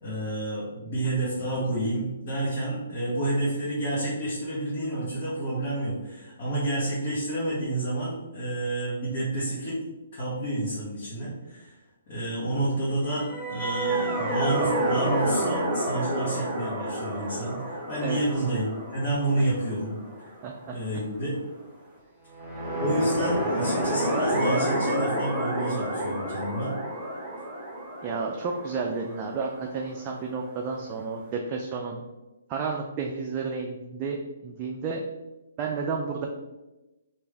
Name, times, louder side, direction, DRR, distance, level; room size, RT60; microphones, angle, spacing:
voice 1, 0.0-9.8 10.1-11.7 12.1-20.3 20.7-21.3 22.8-26.7, right 1 dB, 50° left, -8 dB, 1.2 m, -29 dB
sound 1, 13.2-20.4 22.3-30.1, right 1 dB, 5° right, 1.2 m, -29 dB
voice 2, 20.4-20.8 28.0-32.0 32.5-34.2 34.4-35.0 35.6-36.3, right 4 dB, 25° right, 0 dB, 0.4 m, -31 dB
3.3 x 2.6 x 3.3 m, 1.0 s
hypercardioid pair, 145°, 0 cm